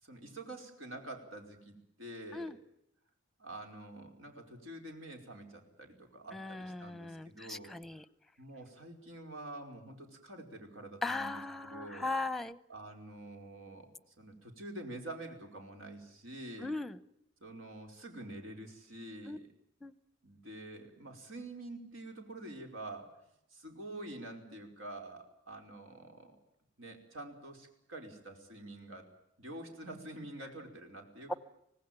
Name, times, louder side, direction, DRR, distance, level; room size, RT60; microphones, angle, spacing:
voice 1, 0.0-2.6 3.4-7.7 8.4-12.1 12.7-16.7 17.4-19.5 20.2-23.1 23.5-26.4 26.8-29.1 29.4-31.4, right 1 dB, 85° right, 4 dB, 5.1 m, -47 dB
voice 2, 6.3-8.0 11.0-12.6 16.6-16.9 19.3-19.4 19.8-19.9 31.3-31.4, left 2 dB, ahead, 16 dB, 0.8 m, -38 dB
25.5 x 19.0 x 9.1 m, 0.79 s
head